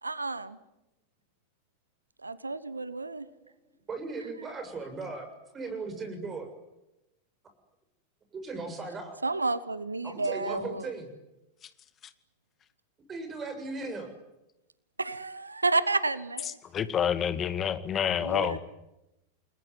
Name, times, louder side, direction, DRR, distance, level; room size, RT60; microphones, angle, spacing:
voice 1, 0.0-0.6 2.2-3.3 9.2-10.8 15.0-16.6 18.2-18.6, right 3 dB, 80° right, 17 dB, 1.2 m, -30 dB
voice 2, 2.9-3.5 3.9-5.3 5.5-6.5 8.3-9.2 10.0-11.1 13.1-14.1 18.0-18.5, right 3 dB, 20° right, 7 dB, 7.2 m, -38 dB
voice 3, 16.7-18.6, left 8 dB, 25° left, 12 dB, 2.0 m, -28 dB
29.5 x 21.0 x 9.7 m, 0.93 s
figure-of-eight pair, 90°, 0 cm